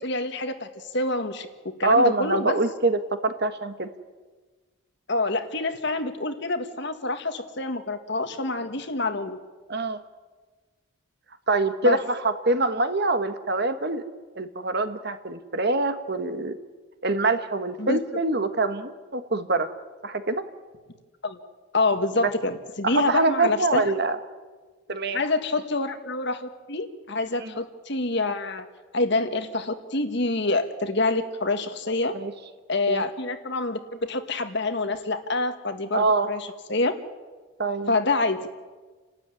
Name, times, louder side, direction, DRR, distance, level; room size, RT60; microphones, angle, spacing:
voice 1, 0.0-1.5 1.8-2.6 5.1-9.4 11.8-12.0 17.8-18.0 21.2-21.4 21.7-23.9 25.1-28.7 28.9-32.2 32.7-36.9 37.9-38.5, left 2 dB, 55° left, 8 dB, 1.7 m, -27 dB
voice 2, 1.8-3.9 9.7-10.0 11.5-14.0 14.3-16.6 17.0-19.7 20.0-20.4 22.2-22.3 22.8-24.2 24.9-25.2 27.4-27.5 32.1-32.3 32.9-33.0 35.9-36.3 37.6-37.9, right 2 dB, 50° right, 9 dB, 1.4 m, -24 dB
29.5 x 13.0 x 9.9 m, 1.3 s
head